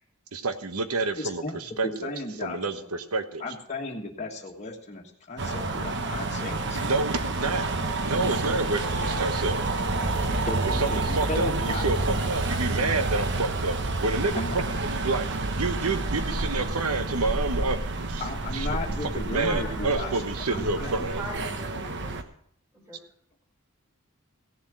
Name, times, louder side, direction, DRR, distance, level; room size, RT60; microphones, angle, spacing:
voice 1, 0.3-2.1 2.4-3.4 6.8-7.7 8.0-9.6 10.7-15.3 15.6-18.2 18.5-18.7 19.1-21.2, right 3 dB, 80° right, 9 dB, 1.2 m, -29 dB
voice 2, 1.1-2.9 3.4-6.9 10.5-11.8 14.3-14.6 18.2-20.9, left 2 dB, 30° left, -3 dB, 1.6 m, -35 dB
sound 1, 5.4-22.2, right 2 dB, 55° right, 1.1 m, -29 dB
voice 3, 19.4-20.2 20.7-22.1 22.7-23.0, equal, 10° right, -3 dB, 3.4 m, -40 dB
16.0 x 7.4 x 6.2 m, 0.68 s
head